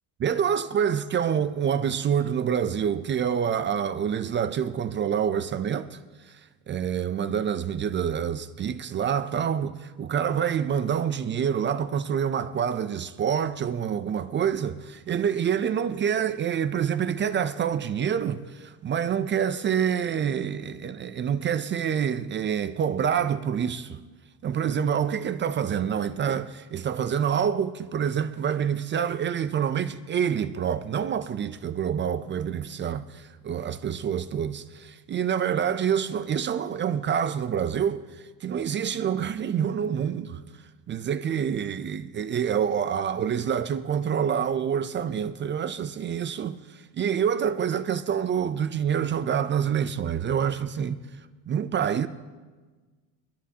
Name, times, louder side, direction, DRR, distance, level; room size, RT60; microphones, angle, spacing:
voice 1, 0.2-6.0 6.3-6.4 6.7-24.0 24.4-40.4 40.9-51.0 51.5-52.1, right 8 dB, 25° right, 0.3 m, -27 dB
21.0 x 13.0 x 2.8 m
supercardioid pair, 115°, 47 cm